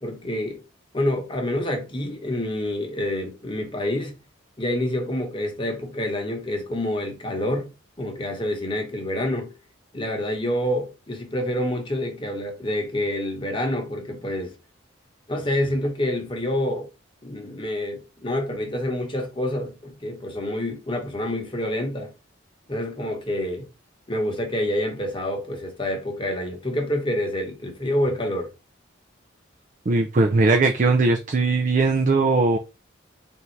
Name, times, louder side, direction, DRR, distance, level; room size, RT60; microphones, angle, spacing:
voice 1, 0.0-0.6 0.9-4.2 4.6-7.7 8.0-9.5 9.9-14.5 15.3-16.9 17.2-22.1 22.7-23.7 24.1-28.5, left 1 dB, 25° left, 1.0 m, -27 dB
voice 2, 29.9-32.6, right 3 dB, 40° right, 0.4 m, -19 dB
3.5 x 2.7 x 4.5 m
head